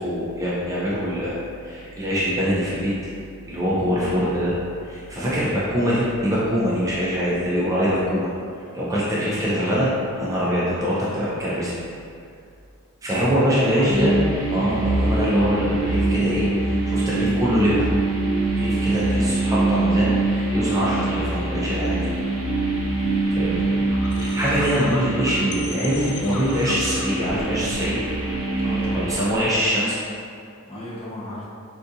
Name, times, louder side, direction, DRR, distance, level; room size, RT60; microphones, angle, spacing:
voice 1, 0.0-2.9 3.5-4.6 4.8-8.3 8.7-9.9 10.2-11.7 13.0-14.2 14.5-17.9 18.5-22.1 23.3-23.6 24.2-28.0 28.9-30.0, equal, 15° right, -8 dB, 0.4 m, -23 dB
voice 2, 3.6-4.1 13.2-14.0 22.9-23.3 28.6-29.1 30.7-31.5, left 1 dB, 25° left, -7 dB, 0.6 m, -35 dB
sound 1, 13.9-29.2, right 2 dB, 65° right, 0.7 m, -24 dB
sound 2, 23.0-29.7, left 3 dB, 80° left, 0.4 m, -38 dB
3.6 x 2.4 x 2.7 m, 2.4 s
head